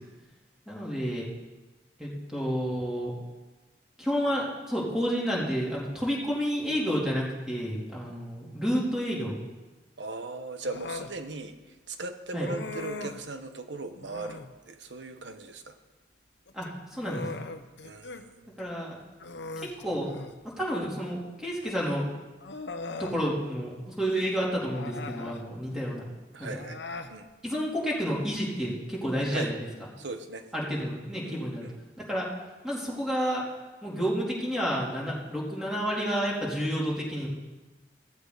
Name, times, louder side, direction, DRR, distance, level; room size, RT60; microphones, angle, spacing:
voice 1, 0.7-1.3 2.0-3.1 4.0-9.4 12.3-12.5 16.5-17.3 18.6-18.9 19.6-20.1 20.6-22.1 23.0-26.0 26.4-26.6 27.4-29.6 30.5-31.7 32.1-32.3 32.6-33.4 33.8-37.3, equal, 5° right, -5 dB, 3.4 m, -30 dB
voice 2, 10.0-11.5 11.9-14.4 14.7-15.7 17.8-18.5 26.3-26.8 27.1-27.3 29.3-29.5 30.0-30.4 31.2-31.8, right 3 dB, 85° right, 8 dB, 1.2 m, -38 dB
Human voice, 10.6-11.2 12.4-13.3 14.0-14.5 16.5-18.2 18.6-18.7 19.2-20.4 21.6-21.7 22.4-23.2 24.6-25.4 26.5-27.1, left 3 dB, 75° left, 0.9 m, -39 dB
16.0 x 14.5 x 4.1 m, 1.2 s
head